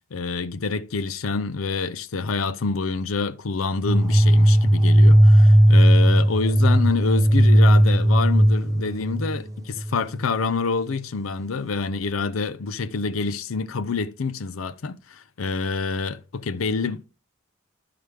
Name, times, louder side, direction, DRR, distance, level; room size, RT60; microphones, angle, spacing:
voice 1, 0.1-17.0, left 4 dB, 85° left, 0.6 m, -27 dB
sound 1, 3.9-10.2, equal, 15° right, 0.5 m, -16 dB
12.5 x 4.9 x 3.4 m
head